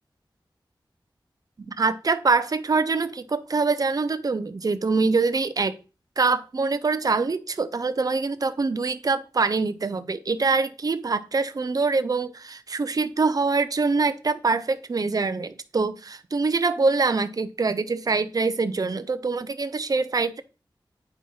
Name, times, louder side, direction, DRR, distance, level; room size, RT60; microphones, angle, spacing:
voice 1, 1.7-5.8 6.2-20.4, right 4 dB, 50° right, 0.6 m, -24 dB
8.8 x 4.5 x 5.5 m
wide cardioid pair, 85°, 8 cm